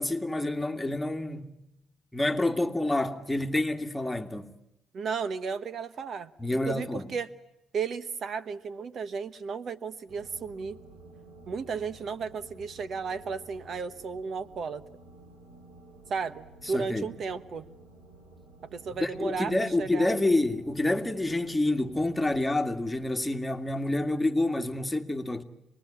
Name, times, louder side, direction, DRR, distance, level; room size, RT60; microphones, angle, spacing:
voice 1, 0.0-1.5 2.1-4.5 6.4-7.1 16.7-17.1 19.0-25.4, left 2 dB, 10° left, 2.1 m, -28 dB
voice 2, 4.9-7.3 7.7-10.8 11.5-14.8 16.1-17.7 18.7-20.2, right 5 dB, 55° right, 1.1 m, -34 dB
sound 1, 10.1-23.1, right 2 dB, 80° right, 6.7 m, -52 dB
27.5 x 20.5 x 9.9 m
cardioid pair, 90°, 0 cm